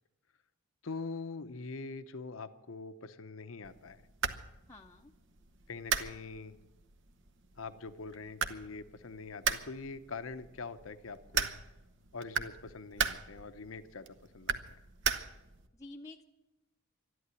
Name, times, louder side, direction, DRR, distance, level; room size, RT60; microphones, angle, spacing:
voice 1, 0.8-4.1 5.7-6.6 7.6-11.5 12.1-14.8, left 4 dB, 75° left, 11 dB, 0.8 m, -44 dB
sound 1, 3.6-15.7, right 6 dB, 60° right, 1.0 m, -38 dB
voice 2, 4.7-5.1 15.7-16.2, left 2 dB, 15° left, 0 dB, 0.7 m, -49 dB
12.5 x 11.0 x 9.7 m, 1.0 s
head